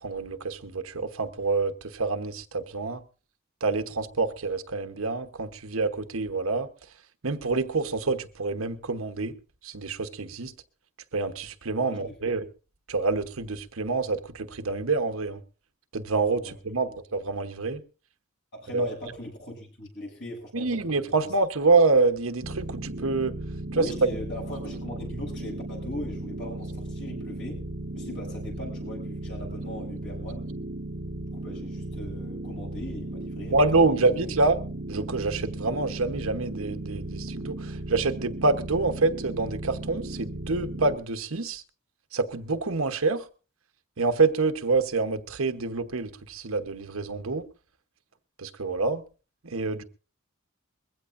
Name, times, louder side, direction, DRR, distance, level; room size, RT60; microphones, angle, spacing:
voice 1, 0.0-3.0 3.6-6.7 7.2-9.3 9.6-10.5 11.1-12.5 12.9-15.4 15.9-17.8 18.7-18.9 20.5-23.3 23.8-23.9 33.5-34.6 34.9-41.6 42.1-43.2 44.0-47.4 48.4-49.0 49.4-49.8, right 3 dB, 80° right, 1.1 m, -26 dB
voice 2, 11.8-12.4 16.4-17.0 18.5-21.0 21.6-21.7 23.7-27.6 27.9-30.5 31.3-33.6 33.9-34.4, left 1 dB, 60° left, 7.3 m, -40 dB
sound 1, 22.4-41.0, right 1 dB, 60° right, 1.1 m, -36 dB
21.5 x 15.5 x 2.6 m
head